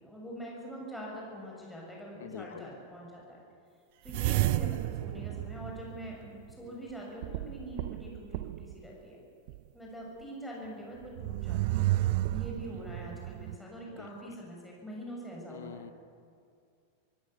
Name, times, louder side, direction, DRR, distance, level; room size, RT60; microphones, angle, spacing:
voice 1, 0.0-3.4 4.0-9.2 9.7-15.9, equal, 5° left, -3 dB, 6.9 m, -44 dB
voice 2, 2.2-2.7 13.9-14.1 15.5-15.9, left 9 dB, 60° left, 14 dB, 1.1 m, -45 dB
sound 1, 4.1-6.5 7.2-8.8 9.5-9.6 11.0-13.6, right 16 dB, 50° right, 0.6 m, -32 dB
25.0 x 16.0 x 8.4 m, 2.3 s
figure-of-eight pair, 90°, 0 cm